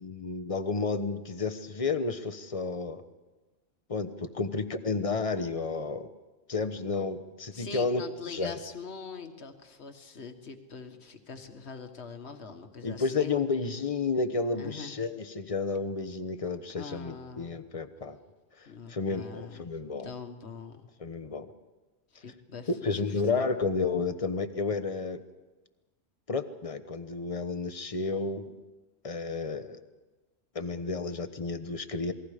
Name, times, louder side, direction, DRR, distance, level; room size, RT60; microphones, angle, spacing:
voice 1, 0.0-3.0 3.9-6.1 6.5-8.0 8.3-8.6 12.8-18.2 18.9-20.1 21.0-21.5 22.8-25.2 26.3-28.5 29.0-29.8 30.5-32.1, left 4 dB, 30° left, 10 dB, 1.0 m, -31 dB
voice 2, 7.5-13.4 14.6-14.9 16.7-17.6 18.7-19.7 20.0-20.8 22.2-23.5, left 5 dB, 60° left, 6 dB, 1.8 m, -43 dB
27.5 x 20.5 x 5.1 m, 1.2 s
omnidirectional pair, 1.3 m